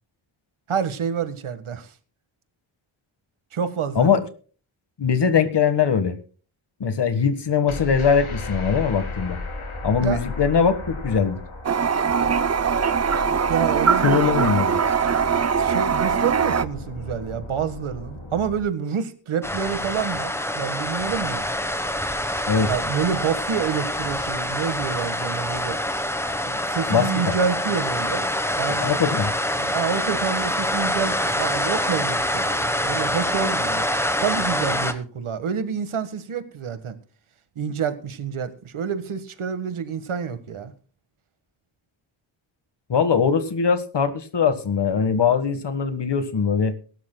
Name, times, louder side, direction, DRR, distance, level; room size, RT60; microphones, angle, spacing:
voice 1, 0.7-1.9 3.5-4.1 10.0-10.2 13.5-14.4 15.6-21.4 22.7-25.8 26.4-28.3 28.5-28.9 29.6-33.8 34.2-37.0 37.5-40.7, right 7 dB, 80° right, 1.7 m, -28 dB
voice 2, 5.0-6.1 6.8-9.4 9.8-11.4 14.0-14.9 22.5-22.7 26.9-27.3 28.8-29.3 42.9-46.8, left 6 dB, 55° left, 1.7 m, -21 dB
sound 1, 7.7-18.6, left 3 dB, 85° left, 7.3 m, -35 dB
Toilet flush, 11.6-16.6, right 6 dB, 35° right, 0.6 m, -21 dB
sound 2, 19.4-34.9, left 1 dB, 5° left, 1.1 m, -26 dB
22.0 x 12.5 x 2.3 m
wide cardioid pair, 165°, 49 cm